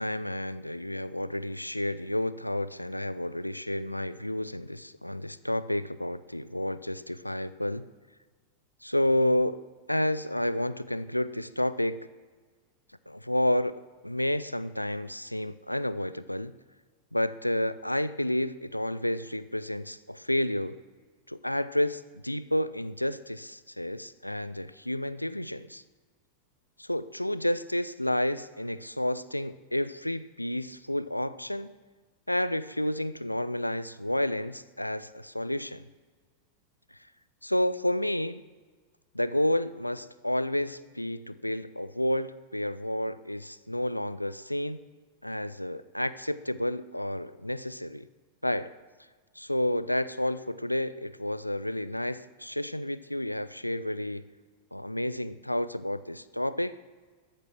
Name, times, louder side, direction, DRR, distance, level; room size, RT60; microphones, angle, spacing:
voice 1, 0.0-7.9 8.8-9.6 9.9-12.0 13.1-13.8 14.0-16.5 17.1-20.8 21.3-25.8 26.8-31.7 32.3-35.8 37.4-38.4 39.1-44.8 45.2-48.1 48.4-48.7 49.4-54.2 54.7-56.7, left 1 dB, 85° left, 16 dB, 0.4 m, -30 dB
13.5 x 11.0 x 6.0 m, 1.4 s
figure-of-eight pair, 90°, 0 cm